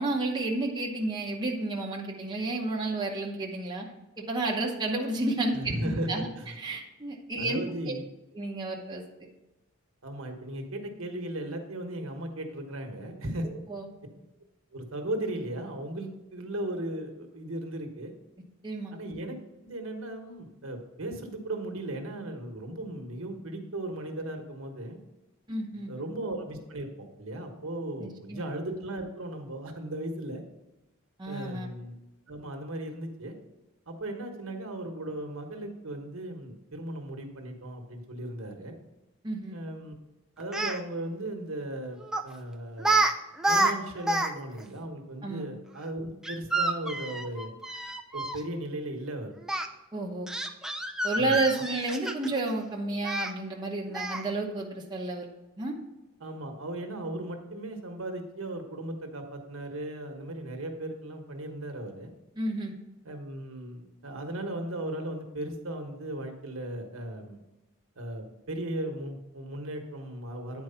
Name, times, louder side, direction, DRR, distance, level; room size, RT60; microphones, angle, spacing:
voice 1, 0.0-3.8 4.2-5.6 5.8-6.3 6.6-8.0 8.3-9.0 13.4-13.8 18.6-18.9 25.5-25.9 28.0-28.4 31.2-31.7 39.2-39.6 45.2-45.4 49.9-50.3 51.0-55.3 55.6-55.7 62.4-62.7, right 2 dB, 20° right, -2 dB, 0.9 m, -31 dB
voice 2, 5.5-6.5 7.4-8.0 10.0-13.5 14.7-18.1 18.9-19.4 19.6-25.0 25.7-30.4 31.2-31.9 32.3-33.3 33.9-38.8 39.5-40.0 40.4-43.1 43.5-47.5 48.1-49.4 51.1-51.4 56.2-62.1 63.0-67.4 68.0-70.6, right 1 dB, 70° right, 4 dB, 1.2 m, -37 dB
Speech, 40.4-40.8 42.1-42.3 42.8-43.1 43.4-44.3 44.6-44.7 46.2-48.4 49.5-49.7 50.3-52.4 53.0-53.3 53.9-54.3, right 2 dB, 5° right, 0.4 m, -28 dB
9.5 x 4.6 x 5.6 m, 1.0 s
head